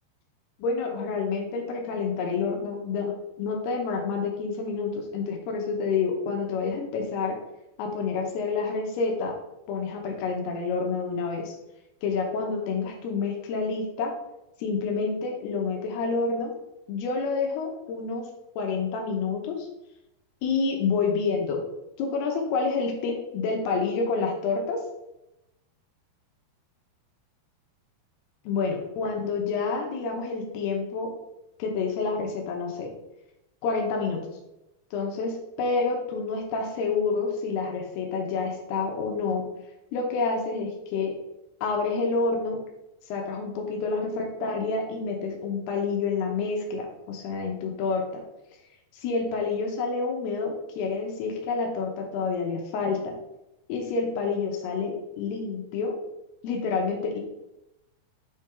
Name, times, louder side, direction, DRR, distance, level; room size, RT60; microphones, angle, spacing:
voice 1, 0.6-7.4 7.8-9.3 9.7-11.6 12.0-14.1 14.6-16.5 16.9-18.3 18.6-19.7 20.4-21.6 22.0-24.8 28.5-31.1 31.6-32.9 33.6-34.2 34.9-39.5 39.9-41.1 41.6-42.6 43.1-48.2 48.9-53.2 53.7-55.9 56.4-57.2, left 4 dB, 85° left, 2 dB, 3.0 m, -28 dB
7.3 x 3.8 x 4.3 m, 0.90 s
omnidirectional pair, 4.6 m